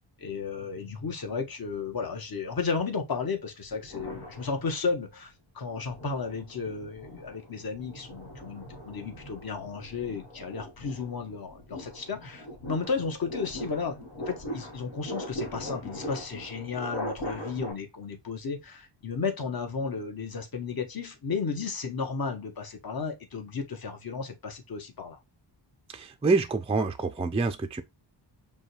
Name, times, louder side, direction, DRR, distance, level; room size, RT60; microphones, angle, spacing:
voice 1, 0.2-25.2, left 5 dB, 50° left, 1.1 m, -34 dB
sound 1, 3.7-5.1 5.6-17.7, equal, 75° left, 1.7 m, -40 dB
voice 2, 25.9-27.8, right 3 dB, 15° right, 0.3 m, -26 dB
5.3 x 2.3 x 3.2 m
wide cardioid pair, 105°, 45 cm